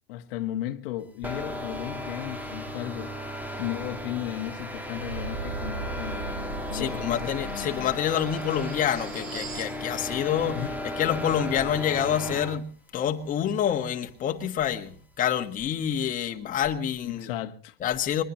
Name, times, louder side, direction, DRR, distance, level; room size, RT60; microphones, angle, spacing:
voice 1, 0.1-3.1 3.6-7.9 10.5-10.8 17.0-17.8, left 13 dB, 70° left, 1.5 m, -35 dB
sound 1, 1.2-12.6, equal, 5° right, 1.6 m, -35 dB
sound 2, 4.9-9.8, right 2 dB, 75° right, 5.2 m, -38 dB
voice 2, 6.7-10.6 11.0-17.3 17.8-18.2, left 9 dB, 25° left, 1.5 m, -27 dB
22.5 x 20.5 x 3.1 m
supercardioid pair, 140°, 30 cm